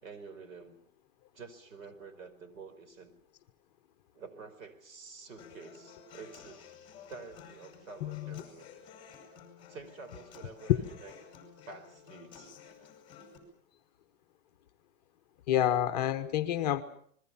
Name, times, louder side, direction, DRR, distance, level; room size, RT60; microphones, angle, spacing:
voice 1, 0.0-0.8 1.3-3.1 4.2-6.7 7.1-8.7 9.7-11.1 11.7-12.5, right 4 dB, 70° right, 5.2 m, -49 dB
Human voice / Acoustic guitar, 5.4-13.4, left 6 dB, 10° left, 5.0 m, -53 dB
voice 2, 8.0-8.4 10.7-10.8 15.5-16.8, left 11 dB, 30° left, 1.0 m, -28 dB
29.5 x 21.5 x 5.7 m
supercardioid pair, 180°, 41 cm